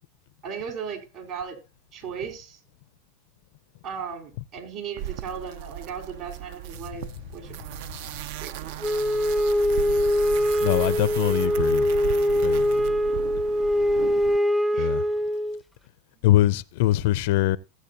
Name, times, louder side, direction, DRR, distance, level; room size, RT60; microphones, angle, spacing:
voice 1, 0.4-1.6 1.9-2.6 3.8-7.0 7.3-7.6 8.4-8.7 14.7-14.9 16.2-16.4, right 7 dB, 50° right, 4.0 m, -36 dB
sound 1, 5.0-14.4, right 12 dB, 65° right, 0.5 m, -36 dB
Wind instrument woodwind instrument, 8.8-15.6, equal, ahead, 0.5 m, -23 dB
voice 2, 10.6-11.9 12.4-12.6 14.8-15.0 16.2-17.6, left 15 dB, 65° left, 0.4 m, -22 dB
15.5 x 8.1 x 2.8 m
hypercardioid pair, 115°, 0 cm